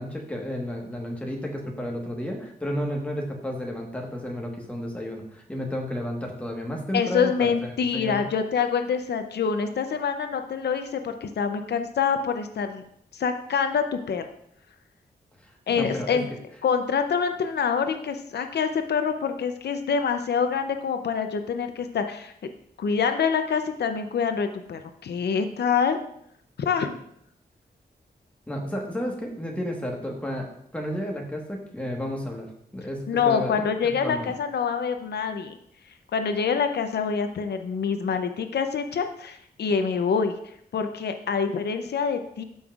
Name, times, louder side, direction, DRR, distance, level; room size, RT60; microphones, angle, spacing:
voice 1, 0.0-7.5 7.9-8.2 15.4-16.3 28.5-30.5 30.7-32.5 32.7-33.5 33.8-34.3, left 1 dB, 10° left, 0 dB, 1.3 m, -32 dB
voice 2, 6.9-12.8 13.1-14.2 15.7-16.3 16.6-22.5 22.8-26.0 26.6-26.9 33.1-35.6 36.1-40.3 40.7-42.4, left 6 dB, 85° left, 7 dB, 0.6 m, -26 dB
12.5 x 5.5 x 2.4 m, 0.70 s
wide cardioid pair, 150°, 17 cm